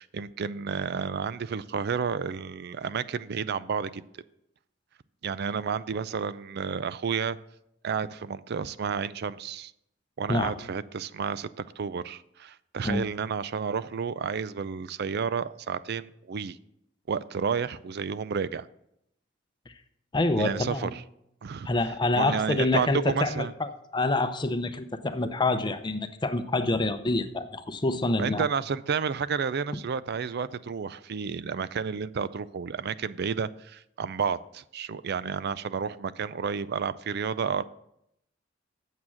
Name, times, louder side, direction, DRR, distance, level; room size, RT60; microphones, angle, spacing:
voice 1, 0.0-4.0 5.2-7.4 7.8-9.7 10.2-11.5 11.8-16.6 17.1-18.7 20.4-21.0 21.4-21.7 22.1-23.5 28.2-37.6, right 6 dB, 55° right, 16 dB, 0.4 m, -31 dB
voice 2, 20.1-20.9 21.7-28.4, left 2 dB, 25° left, 9 dB, 0.6 m, -27 dB
8.4 x 7.3 x 6.3 m, 0.78 s
head